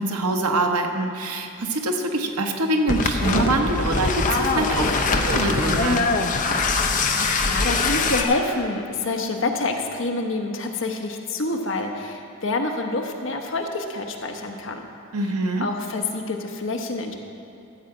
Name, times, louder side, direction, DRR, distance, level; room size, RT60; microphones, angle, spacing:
voice 1, 0.0-6.0 15.1-15.7, right 2 dB, 90° right, 3 dB, 1.0 m, -24 dB
sound 1, 2.9-8.2, left 3 dB, 35° left, 0.6 m, -22 dB
voice 2, 6.9-14.9 15.6-17.1, left 2 dB, 60° left, 3 dB, 1.0 m, -27 dB
13.5 x 4.8 x 7.7 m, 2.6 s
head